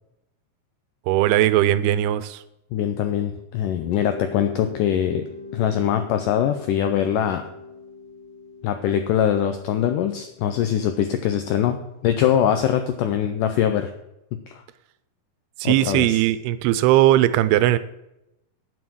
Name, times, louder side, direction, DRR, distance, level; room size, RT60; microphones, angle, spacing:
voice 1, 1.1-2.4 15.6-17.8, right 14 dB, 85° right, 14 dB, 2.6 m, -19 dB
voice 2, 2.7-5.2 5.5-7.4 8.6-11.8 12.0-13.9 14.5-14.6 15.6-16.2, left 9 dB, 90° left, 8 dB, 1.8 m, -22 dB
Mallet percussion, 3.9-12.7, left 4 dB, 65° left, 2.9 m, -42 dB
9.5 x 7.2 x 6.2 m, 0.89 s
omnidirectional pair, 4.6 m